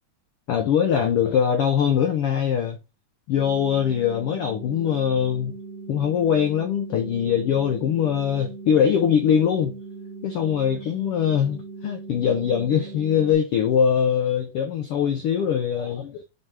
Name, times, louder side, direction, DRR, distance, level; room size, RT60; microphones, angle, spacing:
voice 1, 0.5-2.8 3.3-5.6 5.9-9.8 10.2-16.2, left 8 dB, 90° left, 1.2 m, -22 dB
sound 1, 3.3-13.3, right 4 dB, 35° right, 1.9 m, -39 dB
5.5 x 5.5 x 3.2 m
omnidirectional pair, 3.5 m